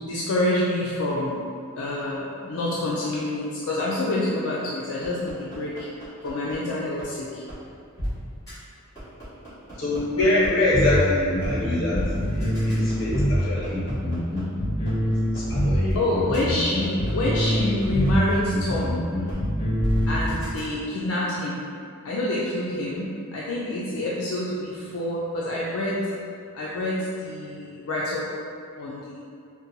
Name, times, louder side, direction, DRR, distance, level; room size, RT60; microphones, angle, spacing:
voice 1, 0.0-1.4 1.8-5.9 6.2-7.4 15.9-19.0 20.1-21.6 22.0-26.0 26.5-28.3 28.8-29.2, left 1 dB, 80° left, -6 dB, 0.4 m, -27 dB
sound 1, 5.0-6.5 7.0-7.1 7.5-7.6 8.0-8.1 8.5-8.6 8.9-10.5 10.9-11.0 11.4-11.5 11.9-14.4 14.9-15.0 15.3-15.4 15.8-16.0 16.3-16.4 16.8-18.3 18.8-18.9 19.3-19.4 19.8-20.6, equal, 15° left, 1.4 m, -32 dB
voice 2, 9.8-12.0 12.3-13.9 15.0-16.0, left 2 dB, 60° left, -7 dB, 0.9 m, -25 dB
sound 2, 10.7-20.3, equal, 20° right, 0.8 m, -25 dB
4.0 x 2.1 x 2.7 m, 2.4 s
head